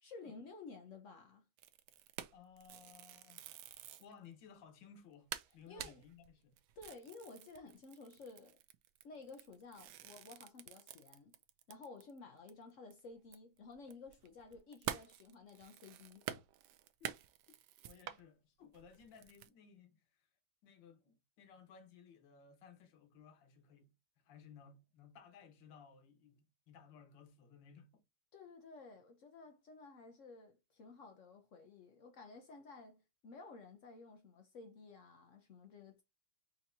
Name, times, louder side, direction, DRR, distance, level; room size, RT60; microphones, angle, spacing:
voice 1, 0.0-1.4 5.7-6.0 6.8-8.6 9.0-11.4 11.7-16.3 28.3-36.0, left 3 dB, 90° left, 0.6 m, -54 dB
sound 1, 1.6-4.1 4.6-4.7 5.0-5.1 5.3-12.2 12.5-12.6 12.9-18.2 18.7-19.5, right 11 dB, 75° right, 0.9 m, -48 dB
voice 2, 2.3-3.4 4.0-6.6 17.0-17.2 17.8-20.3 20.6-23.9 24.2-28.0, left 6 dB, 65° left, 1.7 m, -59 dB
5.5 x 2.9 x 2.6 m
omnidirectional pair, 2.3 m